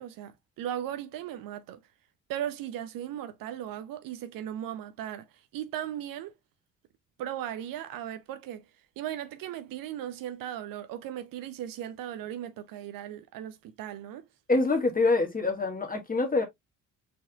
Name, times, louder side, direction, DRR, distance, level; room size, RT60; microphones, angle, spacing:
voice 1, 0.0-1.8 2.3-5.3 5.5-6.3 7.2-8.6 9.0-14.2, right 11 dB, 55° right, 0.7 m, -37 dB
voice 2, 14.5-16.4, left 3 dB, 20° left, 1.5 m, -25 dB
4.6 x 4.1 x 2.3 m
figure-of-eight pair, 50°, 42 cm